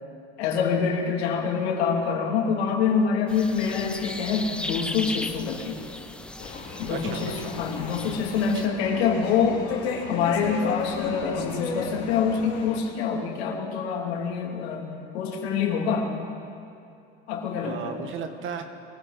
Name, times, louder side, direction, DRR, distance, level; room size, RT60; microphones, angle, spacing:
voice 1, 0.4-5.8 6.8-9.6 10.0-14.9 15.1-16.1 17.3-18.0, left 6 dB, 90° left, 0 dB, 2.8 m, -26 dB
sound 1, 3.3-8.7, left 1 dB, 5° left, 0.5 m, -37 dB
sound 2, 6.4-12.8, left 5 dB, 45° left, 3.4 m, -35 dB
voice 2, 6.9-7.5 8.4-8.6 17.6-18.6, right 6 dB, 40° right, 7 dB, 1.5 m, -35 dB
23.5 x 15.0 x 4.0 m, 2.6 s
supercardioid pair, 130°, 32 cm